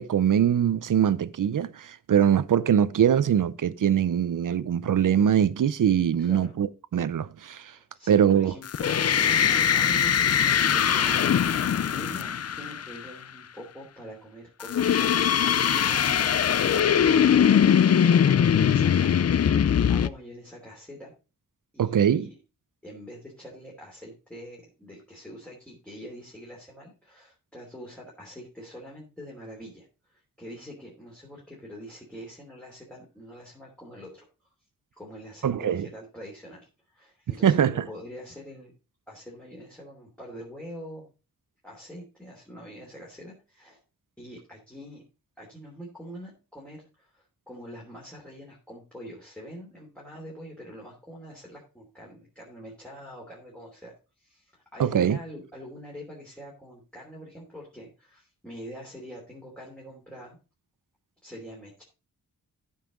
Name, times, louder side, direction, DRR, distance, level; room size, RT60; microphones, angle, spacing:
voice 1, 0.0-7.7 8.1-8.5 21.8-22.3 35.4-35.9 37.4-37.8 54.8-55.2, right 9 dB, 65° right, 0.7 m, -22 dB
voice 2, 6.2-6.5 7.6-19.2 19.9-21.1 21.7-22.4 22.8-34.5 35.0-38.7 39.1-41.0 41.6-43.8 44.2-45.0 45.4-60.4 61.2-61.8, equal, 5° left, 3.0 m, -44 dB
Tesla Monster - Growl, 8.7-13.1 14.6-20.1, left 8 dB, 45° left, 0.5 m, -21 dB
14.0 x 5.7 x 3.9 m
wide cardioid pair, 130°, 35 cm